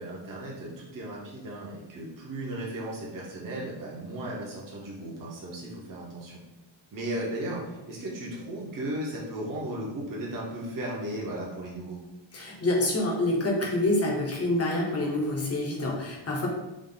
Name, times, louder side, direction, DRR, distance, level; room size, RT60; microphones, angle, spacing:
voice 1, 0.0-6.4 6.9-12.0, right 1 dB, 45° right, -4 dB, 0.8 m, -36 dB
voice 2, 12.3-16.5, left 1 dB, 30° left, -2 dB, 0.8 m, -27 dB
3.6 x 2.4 x 3.8 m, 0.99 s
wide cardioid pair, 170°, 47 cm